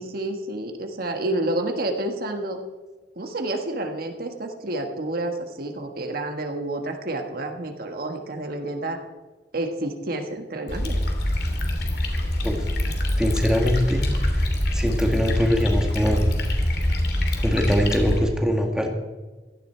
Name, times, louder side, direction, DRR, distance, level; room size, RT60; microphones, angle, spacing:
voice 1, 0.0-2.6 3.1-9.0 9.5-11.0, right 2 dB, 60° right, 4 dB, 1.5 m, -29 dB
sound 1, 10.7-18.2, left 1 dB, 65° left, 2.8 m, -24 dB
voice 2, 13.2-14.5 14.7-16.3 17.4-18.9, equal, 5° right, 2 dB, 1.9 m, -23 dB
16.0 x 13.0 x 4.5 m, 1.3 s
head